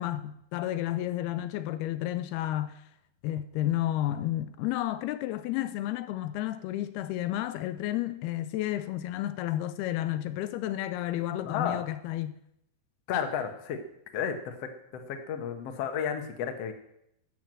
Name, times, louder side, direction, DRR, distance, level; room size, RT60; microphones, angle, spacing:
voice 1, 0.0-2.8 3.2-12.4, left 13 dB, 80° left, 2.5 m, -31 dB
voice 2, 11.4-11.8 13.1-13.8 14.1-16.7, left 8 dB, 65° left, 1.6 m, -32 dB
12.5 x 7.9 x 7.5 m
omnidirectional pair, 4.7 m